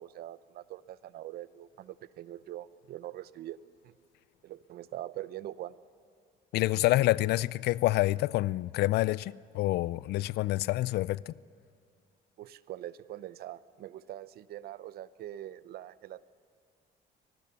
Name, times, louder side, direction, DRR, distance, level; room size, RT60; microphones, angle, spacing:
voice 1, 0.0-3.6 3.8-3.9 4.4-5.7 12.4-16.3, right 13 dB, 65° right, 0.7 m, -43 dB
voice 2, 6.5-11.3, left 17 dB, 75° left, 0.5 m, -27 dB
24.5 x 20.0 x 6.9 m
cardioid pair, 110°, 17 cm